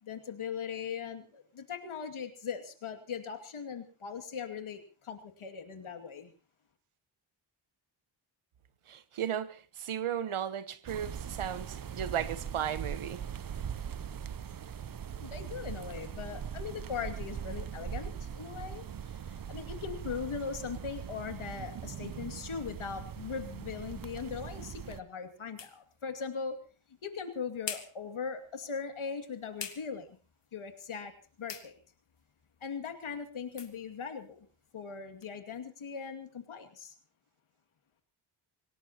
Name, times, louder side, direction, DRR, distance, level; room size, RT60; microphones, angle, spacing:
voice 1, 0.0-6.3 15.2-26.6 27.0-30.2 30.5-31.8 32.6-34.5 34.7-36.9, left 6 dB, 75° left, 2.5 m, -40 dB
voice 2, 8.9-13.2, right 9 dB, 85° right, 1.2 m, -35 dB
sound 1, 10.9-25.0, right 8 dB, 45° right, 0.7 m, -41 dB
sound 2, 25.0-35.3, left 6 dB, 60° left, 2.0 m, -50 dB
26.0 x 17.5 x 3.0 m
wide cardioid pair, 95°, 49 cm